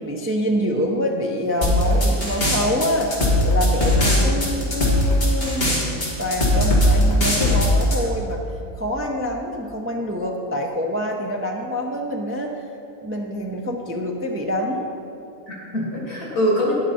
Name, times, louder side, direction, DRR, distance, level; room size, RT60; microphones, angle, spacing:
voice 1, 0.0-3.1 3.4-8.4 8.8-12.6 13.0-14.9, equal, 20° right, 1 dB, 0.4 m, -26 dB
sound 1, 1.6-8.0, left 1 dB, 40° left, 2.1 m, -19 dB
voice 2, 4.0-4.3 15.5-16.7, equal, 90° left, -4 dB, 2.9 m, -24 dB
10.0 x 9.0 x 4.2 m, 2.8 s
omnidirectional pair, 1.6 m